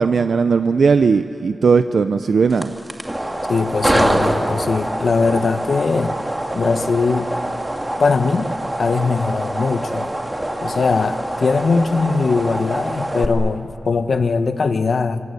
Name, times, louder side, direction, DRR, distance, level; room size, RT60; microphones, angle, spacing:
voice 1, 0.0-2.7, right 5 dB, 85° right, 9 dB, 0.6 m, -17 dB
sound 1, 2.5-13.3, right 1 dB, 15° right, 2.2 m, -24 dB
voice 2, 3.5-6.2 6.5-7.3 8.0-8.5 8.8-10.1 10.6-15.2, left 4 dB, 75° left, 10 dB, 1.1 m, -20 dB
26.0 x 25.5 x 8.4 m, 2.5 s
wide cardioid pair, 125°, 0 cm